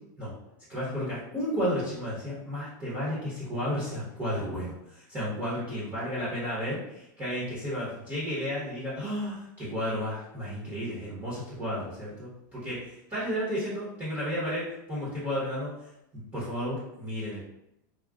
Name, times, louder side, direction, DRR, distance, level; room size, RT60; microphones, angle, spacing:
voice 1, 0.7-15.7 16.3-17.4, equal, 15° right, -9 dB, 1.0 m, -32 dB
3.6 x 2.3 x 2.3 m, 0.83 s
supercardioid pair, 150°, 11 cm